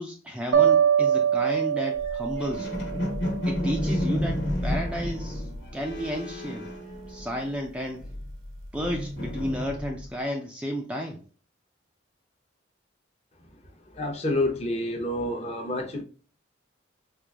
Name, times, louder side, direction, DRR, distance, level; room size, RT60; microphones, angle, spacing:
voice 1, 0.0-2.8 3.5-6.7 7.1-8.1 8.7-11.2, equal, 5° right, 0.3 m, -32 dB
sound 1, 0.5-3.6, right 9 dB, 80° right, 0.5 m, -23 dB
sound 2, 2.0-7.6 7.9-10.1, left 1 dB, 60° left, 1.1 m, -31 dB
voice 2, 13.9-16.0, left 1 dB, 30° left, 0.7 m, -28 dB
4.5 x 2.4 x 2.3 m
head